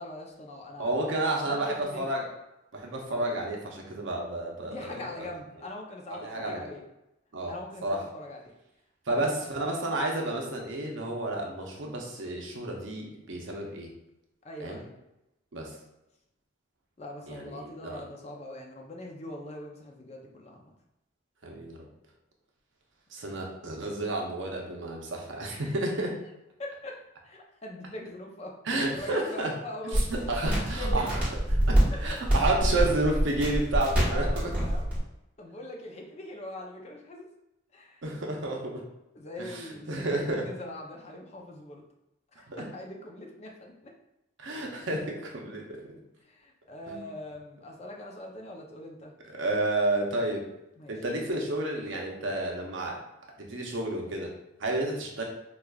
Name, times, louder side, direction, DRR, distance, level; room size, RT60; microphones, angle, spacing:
voice 1, 0.0-2.1 4.6-6.8 7.5-8.5 9.1-9.6 14.4-14.9 17.0-20.7 25.5-25.8 26.6-27.0 27.2-28.6 28.9-30.0 30.4-31.1 34.0-34.9 35.4-37.3 37.7-38.0 39.1-41.8 42.3-43.9 46.2-49.1 50.8-50.9, left 1 dB, 35° left, 0 dB, 0.5 m, -42 dB
voice 2, 0.8-2.3 2.7-5.0 6.1-6.7 7.3-7.5 7.8-8.0 9.1-13.9 14.6-14.8 15.5-15.7 17.3-18.0 21.4-21.9 23.1-26.2 28.7-29.5 29.8-31.2 31.7-34.5 38.0-38.9 39.4-40.5 42.5-42.7 44.4-45.9 46.9-47.0 49.3-50.5 50.9-53.0 53.4-54.3 54.6-55.2, right 2 dB, 75° right, 0 dB, 0.7 m, -31 dB
sound 1, 29.9-35.0, equal, 10° right, 1.3 m, -26 dB
4.8 x 2.4 x 2.3 m, 0.91 s
head